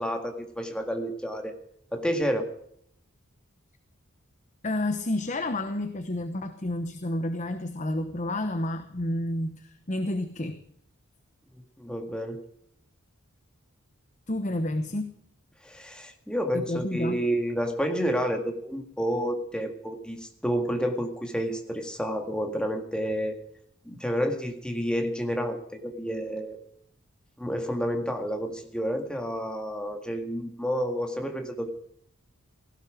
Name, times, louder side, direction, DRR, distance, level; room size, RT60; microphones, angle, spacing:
voice 1, 0.0-1.5 1.9-2.5 11.8-12.4 15.6-23.3 23.9-26.6 27.4-31.7, equal, 5° left, 3 dB, 1.9 m, -30 dB
voice 2, 4.6-10.6 14.3-15.2 16.5-17.2, left 1 dB, 35° left, 8 dB, 1.0 m, -30 dB
17.5 x 15.5 x 5.1 m, 0.70 s
head